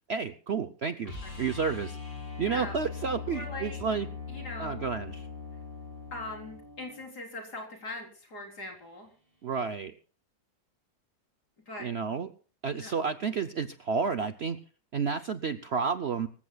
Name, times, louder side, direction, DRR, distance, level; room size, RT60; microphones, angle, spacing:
voice 1, 0.1-1.1 1.4-2.0 2.4-4.1 4.6-5.3 9.4-9.9 11.8-12.3 12.6-14.6 14.9-16.3, right 5 dB, 55° right, 10 dB, 0.7 m, -31 dB
sound 1, 1.1-7.0 9.5-9.6, left 5 dB, 30° left, 6.2 m, -40 dB
voice 2, 3.3-3.8 4.3-4.9 6.1-9.1 11.7-11.9 12.7-12.9, left 2 dB, 65° left, 1 dB, 4.6 m, -41 dB
25.0 x 15.0 x 2.3 m, 0.39 s
omnidirectional pair, 1.8 m